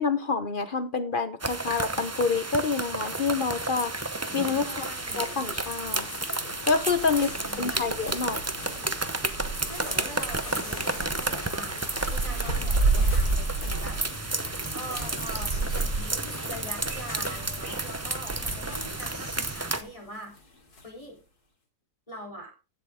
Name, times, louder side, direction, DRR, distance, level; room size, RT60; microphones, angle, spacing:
voice 1, 0.0-3.9 4.3-4.8 5.2-6.1 6.7-7.3 7.6-8.4, left 4 dB, 45° left, 11 dB, 0.8 m, -27 dB
sound 1, 1.4-19.8, right 2 dB, 20° right, 0.4 m, -32 dB
sound 2, 3.7-21.2, left 2 dB, 80° left, 2.9 m, -44 dB
voice 2, 4.6-5.4 7.1-7.9 9.7-20.3 20.8-21.2 22.1-22.5, equal, 20° left, 1 dB, 3.5 m, -43 dB
sound 3, 6.9-19.6, right 3 dB, 50° right, 3.3 m, -32 dB
15.5 x 6.7 x 3.5 m, 0.30 s
omnidirectional pair, 1.6 m